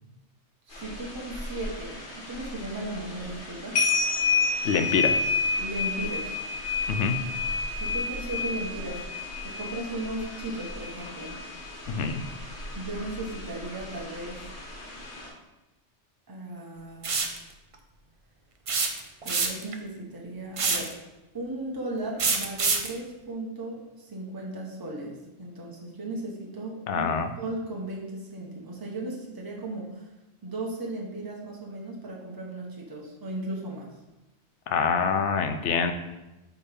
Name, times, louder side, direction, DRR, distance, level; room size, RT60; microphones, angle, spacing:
sound 1, 0.7-15.3, left 4 dB, 65° left, 1.6 m, -31 dB
voice 1, 0.7-3.8 5.6-6.3 7.8-9.0 9.4-11.4 12.7-14.4 16.3-17.3 19.2-20.9 21.3-30.1 30.4-33.9, right 1 dB, 20° right, -2 dB, 0.9 m, -36 dB
voice 2, 4.6-5.2 6.9-7.2 11.9-12.2 26.9-27.3 34.7-35.9, left 5 dB, 85° left, 8 dB, 0.9 m, -25 dB
sound 2, 17.0-17.4 18.7-19.7 20.6-20.9 22.2-22.9, right 4 dB, 40° right, 0.5 m, -25 dB
8.5 x 3.6 x 3.4 m, 1.0 s
omnidirectional pair, 1.2 m